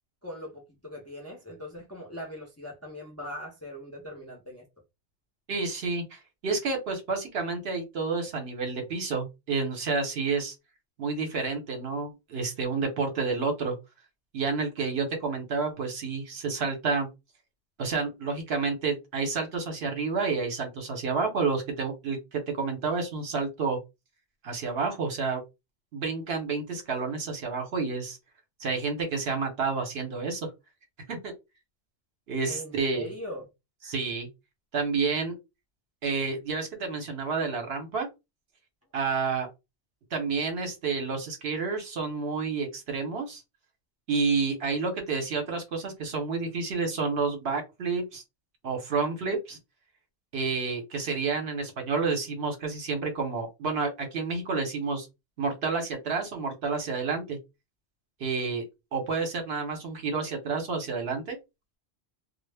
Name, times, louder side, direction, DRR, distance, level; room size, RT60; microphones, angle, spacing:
voice 1, 0.2-4.6 32.5-33.4, left 1 dB, 20° left, 0.4 m, -40 dB
voice 2, 5.5-10.5 11.0-13.7 14.3-17.1 17.8-23.8 24.4-25.4 25.9-28.2 28.6-30.5 31.1-31.3 32.3-33.1 33.8-34.3 34.7-35.3 36.0-38.1 38.9-39.5 40.1-43.4 44.1-48.2 48.6-49.6 50.3-55.1 55.4-57.4 58.2-58.6 58.9-61.4, right 4 dB, 65° right, 0.9 m, -30 dB
2.1 x 2.0 x 3.3 m
omnidirectional pair, 1.2 m